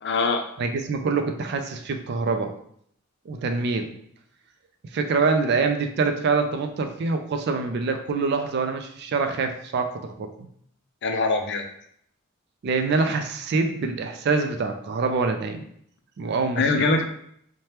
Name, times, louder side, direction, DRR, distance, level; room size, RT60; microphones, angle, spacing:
voice 1, 0.0-0.4 11.0-11.6 16.6-17.1, left 3 dB, 55° left, 5 dB, 0.4 m, -22 dB
voice 2, 0.6-2.5 3.3-3.9 4.9-10.5 12.6-15.6 16.2-16.9, right 4 dB, 55° right, 6 dB, 0.3 m, -25 dB
2.8 x 2.2 x 3.2 m, 0.66 s
head